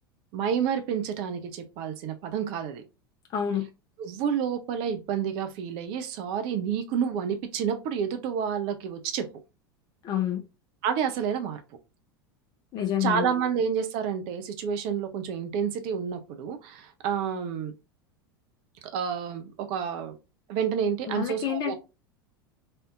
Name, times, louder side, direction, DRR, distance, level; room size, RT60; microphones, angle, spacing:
voice 1, 0.3-2.8 4.0-9.2 10.8-11.6 13.0-17.7 18.9-20.1 20.5-21.7, right 7 dB, 45° right, 0.5 m, -29 dB
voice 2, 3.3-3.7 10.0-10.4 12.7-13.3 21.1-21.7, left 10 dB, 35° left, 0.5 m, -28 dB
3.4 x 2.6 x 2.4 m
figure-of-eight pair, 85°, 12 cm